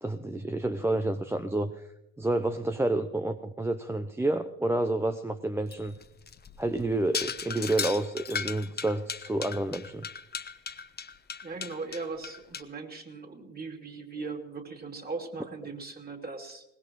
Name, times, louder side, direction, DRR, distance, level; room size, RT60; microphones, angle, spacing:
voice 1, 0.0-1.8 2.2-6.0 6.6-10.1, right 2 dB, 5° right, 9 dB, 0.6 m, -29 dB
sound 1, 5.7-12.6, left 6 dB, 25° left, 1.0 m, -36 dB
voice 2, 11.4-16.7, right 4 dB, 20° right, 4 dB, 2.8 m, -39 dB
22.0 x 19.0 x 3.1 m, 0.85 s
hypercardioid pair, 70°, 41 cm